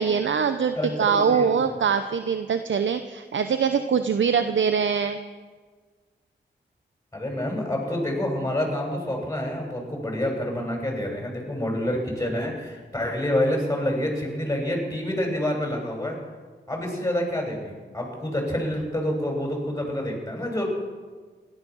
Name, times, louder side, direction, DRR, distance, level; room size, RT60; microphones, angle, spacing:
voice 1, 0.0-5.2, right 6 dB, 75° right, 9 dB, 0.8 m, -23 dB
voice 2, 0.8-1.5 7.1-16.2 16.7-20.7, left 1 dB, 15° left, 0 dB, 7.0 m, -27 dB
17.5 x 12.5 x 6.4 m, 1.4 s
cardioid pair, 45°, 20 cm